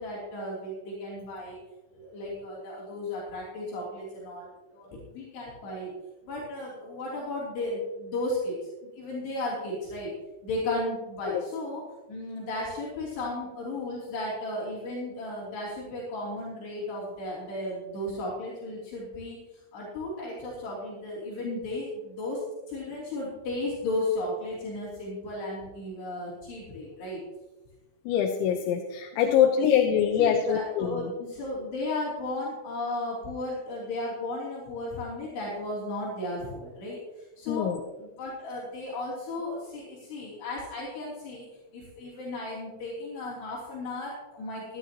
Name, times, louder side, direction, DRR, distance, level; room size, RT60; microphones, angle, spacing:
voice 1, 0.0-1.6 1.9-6.0 6.3-10.1 10.4-11.8 12.1-19.4 19.7-22.4 22.7-27.2 29.2-29.5 30.2-37.7 38.0-41.5 41.7-44.8, left 2 dB, 65° left, -6 dB, 5.3 m, -34 dB
voice 2, 28.1-31.1 37.5-37.8, left 8 dB, 90° left, 2 dB, 3.2 m, -24 dB
19.0 x 11.5 x 3.0 m, 1.1 s
omnidirectional pair, 5.2 m